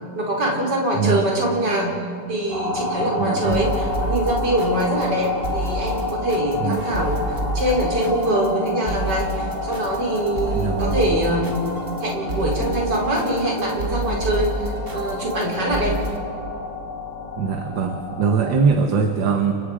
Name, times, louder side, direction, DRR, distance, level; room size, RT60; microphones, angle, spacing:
voice 1, 0.1-11.6 12.0-16.0, right 1 dB, 65° right, -1 dB, 4.9 m, -23 dB
voice 2, 0.9-1.2 3.2-3.6 6.6-6.8 10.5-11.0 17.4-19.5, right 5 dB, 85° right, 4 dB, 2.0 m, -21 dB
sound 1, 2.5-18.6, left 2 dB, 45° left, 4.5 m, -30 dB
sound 2, 3.4-16.2, right 1 dB, 45° right, 2.4 m, -29 dB
29.0 x 25.5 x 5.1 m, 2.4 s
omnidirectional pair, 2.0 m